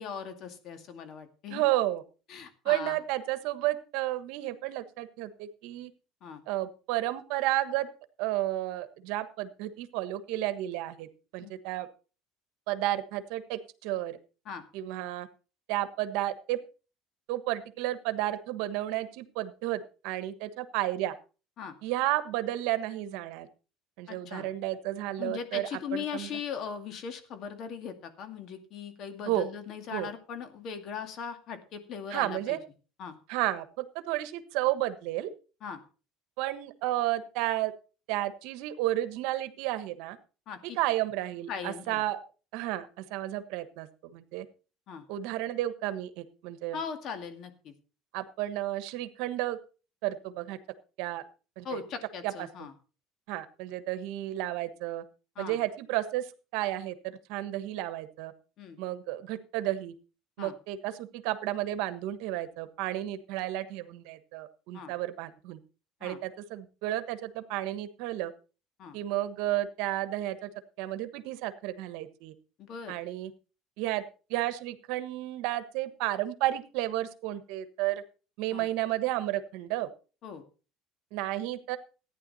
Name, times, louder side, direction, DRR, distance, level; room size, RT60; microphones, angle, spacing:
voice 1, 0.0-1.6 2.3-3.0 6.2-6.4 11.4-11.5 14.5-14.6 21.6-21.8 24.1-24.5 25.2-32.6 33.0-33.2 35.6-35.8 40.5-40.8 41.5-42.0 44.9-45.1 46.7-47.7 51.6-52.7 55.4-55.6 58.6-58.8 60.4-60.6 64.7-64.9 66.0-66.2 68.8-69.0 72.6-72.9 78.5-78.7 80.2-80.4, left 7 dB, 50° left, 8 dB, 2.2 m, -39 dB
voice 2, 1.5-2.0 2.6-5.9 6.5-7.9 8.2-11.1 11.3-11.9 12.7-14.2 14.7-15.3 15.7-16.6 17.3-21.1 21.8-23.5 24.0-26.3 29.2-29.5 29.9-30.1 32.1-32.6 33.3-35.3 36.4-37.7 38.1-40.2 40.6-42.2 42.5-44.5 45.1-46.8 48.1-49.6 50.0-50.6 51.0-51.2 51.6-51.8 52.2-52.5 53.3-55.0 55.4-58.3 58.8-59.9 60.4-65.6 66.0-68.3 68.9-70.5 70.8-72.3 72.9-73.3 73.8-74.0 74.3-78.0 78.4-79.9 81.1-81.8, right 15 dB, 75° right, 11 dB, 1.3 m, -32 dB
14.5 x 10.0 x 4.2 m, 0.35 s
cardioid pair, 125°, 0 cm